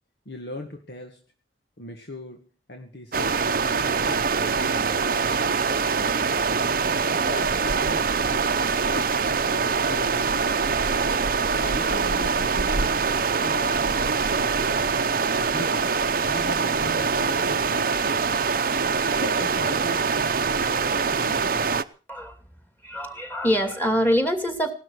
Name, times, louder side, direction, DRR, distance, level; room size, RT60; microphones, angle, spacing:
voice 1, 0.3-1.2 1.8-6.3 7.1-10.9 11.5-15.0 15.4-16.0 16.3-18.4 19.0-21.8, left 1 dB, 65° left, 3 dB, 2.0 m, -39 dB
sound 1, 3.1-21.8, right 5 dB, 50° right, 0.8 m, -24 dB
voice 2, 22.8-24.7, equal, 10° left, 6 dB, 2.5 m, -24 dB
17.5 x 12.5 x 6.4 m, 0.40 s
head